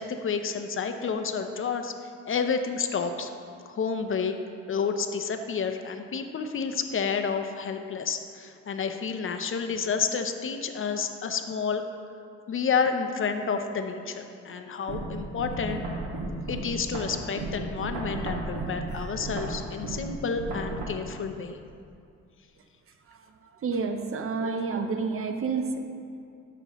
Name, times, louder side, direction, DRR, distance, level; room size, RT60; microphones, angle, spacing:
voice 1, 0.0-1.9 2.2-3.3 3.7-4.3 4.7-11.8 12.5-15.8 16.5-21.6, left 5 dB, 45° left, 7 dB, 0.7 m, -30 dB
sound 1, 14.9-20.9, right 2 dB, 75° right, 1.8 m, -34 dB
voice 2, 23.5-25.8, right 4 dB, 45° right, 6 dB, 0.8 m, -29 dB
12.5 x 6.9 x 3.1 m, 2.4 s
cardioid pair, 90°, 30 cm